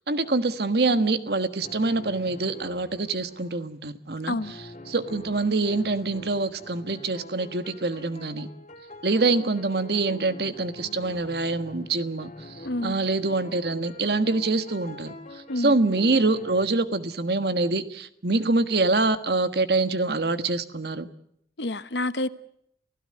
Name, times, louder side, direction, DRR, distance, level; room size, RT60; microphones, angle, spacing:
voice 1, 0.1-4.6 4.9-8.5 9.0-12.6 12.8-15.1 15.6-21.1, right 3 dB, 60° right, 1.5 m, -25 dB
sound 1, 1.6-3.6 4.4-16.6, left 1 dB, 40° left, 2.9 m, -45 dB
voice 2, 12.6-13.0 15.5-15.7 21.6-22.3, left 1 dB, 75° left, 1.1 m, -28 dB
29.5 x 16.0 x 7.8 m
head